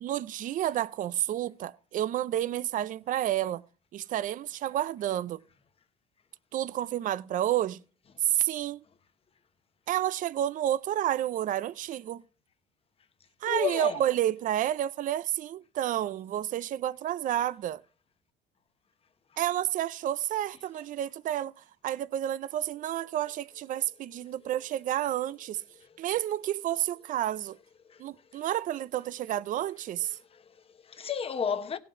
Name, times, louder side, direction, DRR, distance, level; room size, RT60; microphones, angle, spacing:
voice 1, 0.0-3.6 3.9-5.4 6.5-7.8 8.2-8.8 9.9-12.2 13.4-17.8 19.4-21.5 21.8-25.6 26.0-27.6 28.0-30.2, right 12 dB, 50° right, 0.5 m, -30 dB
voice 2, 13.5-14.0 20.7-20.8 25.7-26.0 27.8-28.4 30.1-31.8, left 7 dB, 35° left, 1.1 m, -34 dB
17.0 x 5.8 x 5.2 m
cardioid pair, 110°, 17 cm